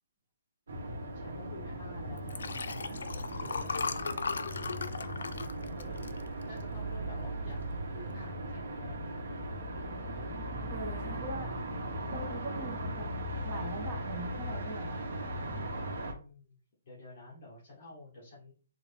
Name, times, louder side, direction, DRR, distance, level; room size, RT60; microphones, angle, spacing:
sound 1, 0.7-16.1, right 1 dB, 65° right, 0.9 m, -38 dB
voice 1, 1.1-4.3 5.6-7.6 7.9-9.3 16.1-16.6 16.8-18.5, left 2 dB, 30° left, -5 dB, 0.9 m, -50 dB
Liquid, 2.2-6.8 7.3-7.6 7.8-7.9, left 5 dB, 85° left, 0.3 m, -37 dB
voice 2, 10.7-11.5 12.1-13.1 13.4-15.0 15.5-15.6, right 2 dB, 15° right, -1 dB, 0.6 m, -41 dB
3.6 x 2.1 x 3.2 m, 0.38 s
hypercardioid pair, 180°, 0 cm